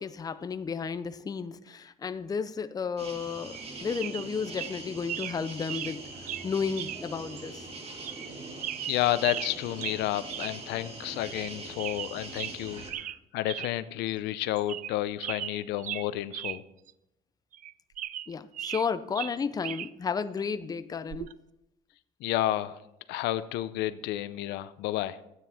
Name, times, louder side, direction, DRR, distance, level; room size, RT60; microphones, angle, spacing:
voice 1, 0.0-6.0 6.4-7.7 18.3-21.3, left 5 dB, 20° left, 12 dB, 0.5 m, -33 dB
sound 1, 3.0-12.9, right 2 dB, 35° right, 1.9 m, -42 dB
sound 2, 3.5-3.7 3.9-4.3 4.5-4.7 5.1-5.4 5.7-6.0 6.3-6.4 6.8-7.0 7.4-7.5 8.0-8.3 8.6-9.5 9.8-10.0 10.3-10.5 10.8-10.9 11.3-11.5 11.8-12.6 12.9-13.2 13.4-13.7 14.1-14.2 14.6-14.9 15.2-16.6 16.9-17.0 17.5-18.9 19.1-19.9 21.1-21.3, right 12 dB, 50° right, 0.4 m, -37 dB
voice 2, 8.9-16.6 22.2-22.8 23.1-25.2, left 14 dB, 85° left, 14 dB, 0.6 m, -31 dB
13.0 x 9.2 x 3.5 m, 0.86 s
cardioid pair, 110°, 17 cm